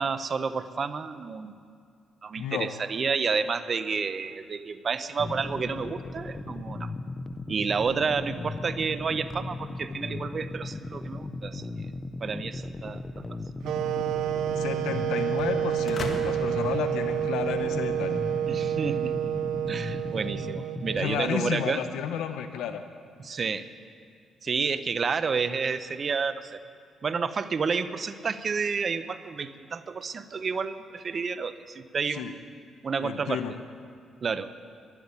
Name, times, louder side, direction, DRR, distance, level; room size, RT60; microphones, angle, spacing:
voice 1, 0.0-1.6 2.2-6.9 7.5-11.6 12.2-13.0 13.3-13.4 18.5-19.3 19.7-21.8 23.2-23.7 24.4-26.6 27.0-32.4 32.8-33.4 34.2-34.5, right 5 dB, 45° right, 12 dB, 0.7 m, -30 dB
voice 2, 2.4-2.7 14.6-18.2 21.0-22.8 32.1-32.3 33.0-33.5, left 9 dB, 85° left, 8 dB, 0.8 m, -32 dB
sound 1, 5.2-21.3, left 2 dB, 25° left, 0.7 m, -37 dB
sound 2, 13.6-21.6, right 11 dB, 80° right, 0.5 m, -29 dB
sound 3, 15.9-17.8, left 2 dB, 50° left, 1.8 m, -36 dB
12.0 x 11.5 x 9.8 m, 2.3 s
cardioid pair, 90°, 0 cm